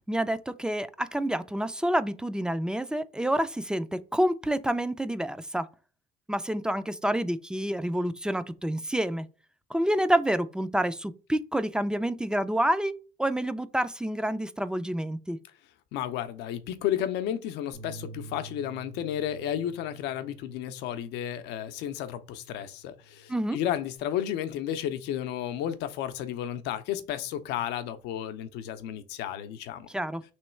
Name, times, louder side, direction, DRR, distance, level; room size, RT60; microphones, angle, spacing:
voice 1, 0.1-5.7 6.3-9.3 9.7-12.9 13.2-15.4 23.3-23.6 29.9-30.2, right 1 dB, 5° right, 0.3 m, -28 dB
voice 2, 15.9-29.9, left 10 dB, 90° left, 0.6 m, -32 dB
Bass guitar, 17.7-22.2 22.6-24.0, right 3 dB, 60° right, 1.7 m, -49 dB
3.1 x 3.0 x 4.3 m
cardioid pair, 110°, 17 cm